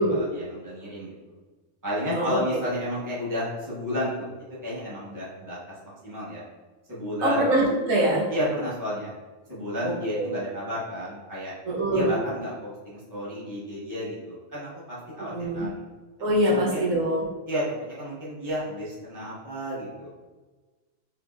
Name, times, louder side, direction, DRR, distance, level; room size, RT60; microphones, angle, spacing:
voice 1, 0.0-1.3 1.8-4.3 4.6-5.6 6.0-6.4 6.9-7.6 8.3-9.1 9.5-11.5 11.9-15.8 16.4-16.9 17.5-20.1, equal, 15° right, -8 dB, 1.0 m, -32 dB
voice 2, 2.1-2.6 7.2-8.2 9.8-10.3 11.7-12.1 15.3-15.7 16.2-17.2, right 1 dB, 75° right, -4 dB, 1.3 m, -24 dB
3.9 x 3.3 x 2.4 m, 1.3 s
omnidirectional pair, 1.4 m